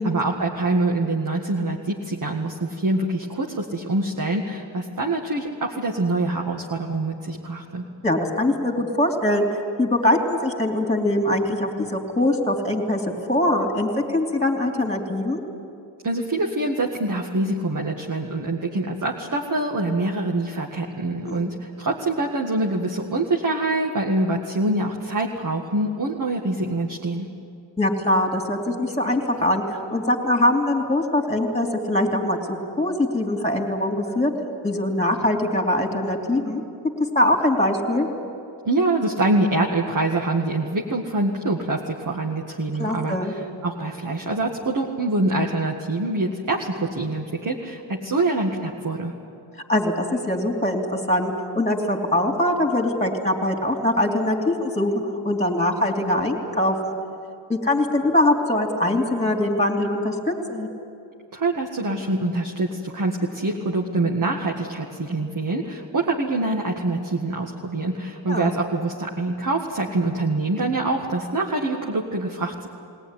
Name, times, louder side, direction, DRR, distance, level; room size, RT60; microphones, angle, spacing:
voice 1, 0.0-7.8 16.0-27.3 38.7-49.1 61.3-72.7, right 2 dB, 40° right, -1 dB, 1.9 m, -25 dB
voice 2, 8.0-9.5 9.8-15.4 21.2-21.5 27.8-34.3 34.6-36.6 37.1-38.1 42.8-43.3 49.7-57.0 57.5-60.7 68.3-68.5, left 1 dB, 15° left, 2 dB, 3.2 m, -22 dB
21.5 x 18.0 x 9.9 m, 2.6 s
wide cardioid pair, 100°, 49 cm